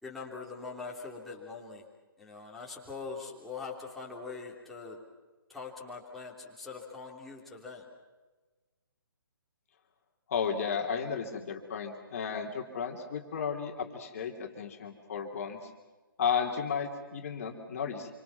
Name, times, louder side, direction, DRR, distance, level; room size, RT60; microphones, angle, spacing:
voice 1, 0.0-1.9 2.2-5.0 5.5-7.8, left 4 dB, ahead, -5 dB, 3.5 m, -42 dB
voice 2, 10.3-15.7 16.2-18.1, left 6 dB, 40° left, 2 dB, 3.1 m, -33 dB
27.5 x 25.5 x 6.0 m, 1.3 s
figure-of-eight pair, 135°, 12 cm